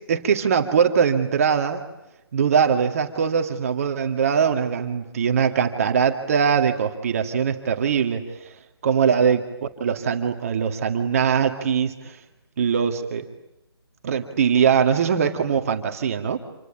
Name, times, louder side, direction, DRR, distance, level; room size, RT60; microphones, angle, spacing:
voice 1, 0.1-1.8 2.3-8.2 8.8-9.4 9.8-12.2 12.6-13.3 14.0-16.4, right 7 dB, 35° right, 5 dB, 2.1 m, -21 dB
27.5 x 25.0 x 8.5 m, 0.92 s
figure-of-eight pair, 155°, 13 cm